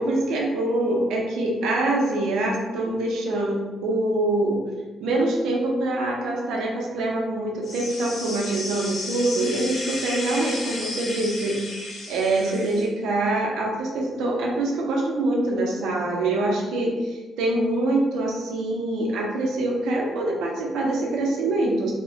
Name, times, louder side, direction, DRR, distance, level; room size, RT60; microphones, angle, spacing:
voice 1, 0.0-4.6 5.0-21.9, right 2 dB, 85° right, -1 dB, 0.5 m, -25 dB
sound 1, 7.6-12.9, left 2 dB, 75° left, 0.8 m, -33 dB
2.7 x 2.0 x 2.7 m, 1.3 s
cardioid pair, 90°, 0 cm